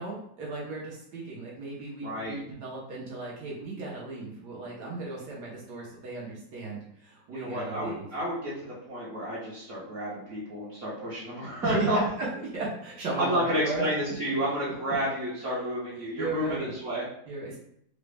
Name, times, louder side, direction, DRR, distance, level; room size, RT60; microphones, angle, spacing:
voice 1, 0.0-8.0 11.6-12.3 12.5-13.8 16.2-16.7 17.3-17.6, right 3 dB, 80° right, -4 dB, 1.4 m, -35 dB
voice 2, 2.0-2.4 7.3-12.0 13.2-17.1, equal, 55° right, -9 dB, 1.1 m, -31 dB
3.8 x 2.0 x 3.3 m, 0.71 s
omnidirectional pair, 1.8 m